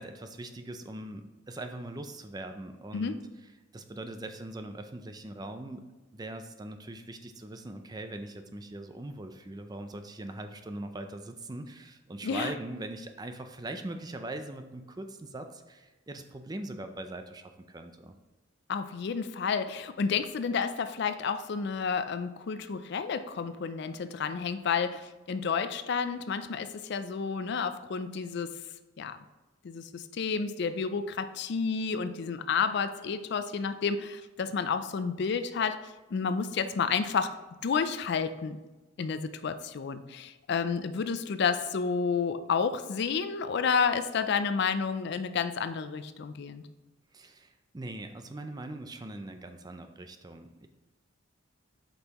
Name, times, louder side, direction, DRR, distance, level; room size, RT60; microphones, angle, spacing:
voice 1, 0.0-3.2 3.7-5.8 6.1-18.1 47.1-50.7, right 2 dB, 20° right, 7 dB, 0.4 m, -41 dB
voice 2, 12.2-12.5 18.7-28.5 29.0-29.2 29.6-38.6 39.0-46.6, left 5 dB, 55° left, 11 dB, 0.4 m, -30 dB
8.0 x 5.4 x 3.0 m, 1.2 s
head